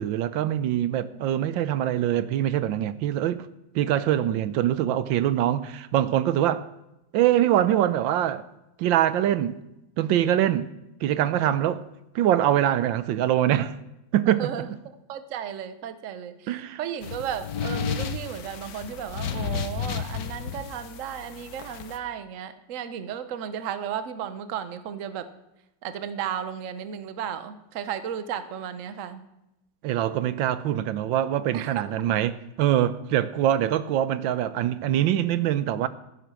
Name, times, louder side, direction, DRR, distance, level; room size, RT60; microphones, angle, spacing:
voice 1, 0.0-3.5 3.7-6.6 7.1-8.4 8.8-9.6 10.0-10.7 11.0-11.8 12.1-13.8 14.1-14.8 16.5-16.8 29.8-35.9, right 11 dB, 75° right, 1.4 m, -24 dB
voice 2, 14.3-14.7 15.1-25.3 25.8-29.3 31.5-31.8, right 9 dB, 55° right, 1.0 m, -34 dB
sound 1, 17.0-22.0, left 7 dB, 55° left, 1.3 m, -32 dB
14.0 x 10.0 x 6.2 m
omnidirectional pair, 2.1 m